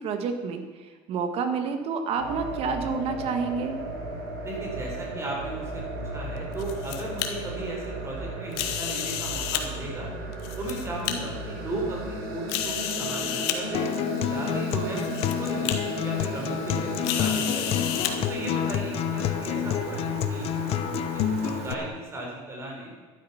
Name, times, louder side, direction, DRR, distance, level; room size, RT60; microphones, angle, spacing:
voice 1, 0.0-3.8, right 5 dB, 50° right, 7 dB, 1.6 m, -29 dB
sound 1, 2.2-21.9, right 2 dB, 80° right, 3.6 m, -35 dB
voice 2, 4.4-10.1 10.6-13.9 14.2-15.1 15.4-17.7 18.3-20.5 21.1-22.9, right 1 dB, 20° right, -1 dB, 4.6 m, -36 dB
sound 2, 6.4-7.3 8.5-9.6 10.3-11.1 11.8-11.9 12.5-13.6 14.5-14.6 15.0-15.3 15.6-15.8 17.0-18.1, left 10 dB, 85° left, 1.6 m, -30 dB
Acoustic guitar, 13.7-21.7, left 11 dB, 50° left, 0.8 m, -29 dB
12.5 x 12.0 x 5.8 m, 1.5 s
cardioid pair, 130°, 13 cm